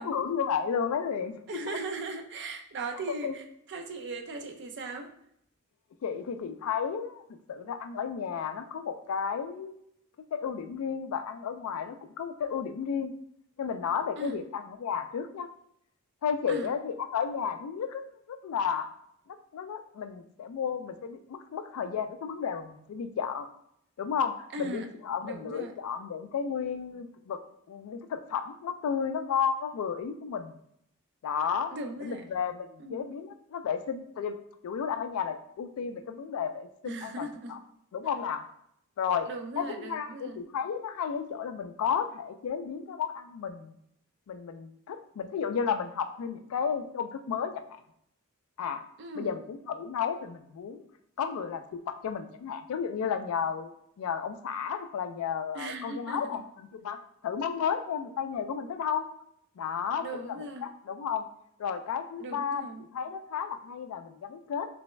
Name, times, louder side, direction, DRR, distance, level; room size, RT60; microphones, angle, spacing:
voice 1, 0.0-1.4 3.2-3.3 6.0-7.2 7.5-9.8 10.3-13.1 13.6-15.5 16.2-18.9 19.3-23.5 24.0-27.4 27.7-30.5 31.2-31.7 32.0-34.4 34.6-37.6 37.9-38.4 39.0-39.3 39.6-43.8 44.3-47.6 48.6-48.8 49.2-50.9 51.2-53.7 54.0-56.4 56.7-57.0 57.2-59.1 59.6-60.4 60.6-61.3 61.6-62.7 62.9-64.7, left 7 dB, 70° left, 9 dB, 0.3 m, -33 dB
voice 2, 1.5-5.1 14.2-14.4 16.5-16.7 24.5-24.9 25.2-25.7 31.7-32.3 32.8-33.1 36.8-37.6 39.3-40.4 49.0-49.3 55.5-56.4 60.0-60.7 62.2-62.9, right 2 dB, 55° right, 5 dB, 0.5 m, -38 dB
3.3 x 3.1 x 3.1 m, 0.72 s
head